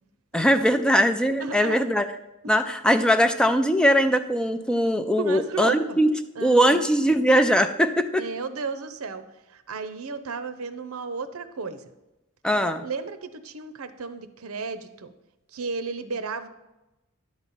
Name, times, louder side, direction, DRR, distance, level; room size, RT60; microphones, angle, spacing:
voice 1, 0.3-2.1 2.5-8.2 12.4-12.8, equal, 5° left, 9 dB, 0.3 m, -21 dB
voice 2, 1.4-1.8 5.2-6.0 6.4-6.8 8.2-9.2 9.5-11.9 12.5-15.1 15.5-16.5, right 4 dB, 80° right, 10 dB, 0.7 m, -34 dB
10.5 x 4.1 x 7.4 m, 0.99 s
head